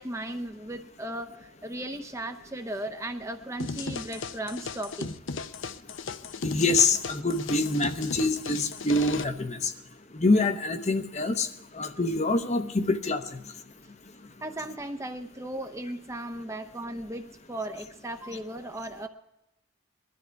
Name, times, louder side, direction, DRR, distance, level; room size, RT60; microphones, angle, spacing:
voice 1, 0.0-5.2 14.4-19.1, right 1 dB, 15° right, 7 dB, 0.6 m, -36 dB
sound 1, 3.6-9.2, left 4 dB, 60° left, 0.6 m, -36 dB
voice 2, 6.4-9.7 10.2-11.5 11.8-13.2, left 2 dB, 30° left, 9 dB, 0.8 m, -25 dB
20.5 x 12.5 x 4.6 m, 0.90 s
head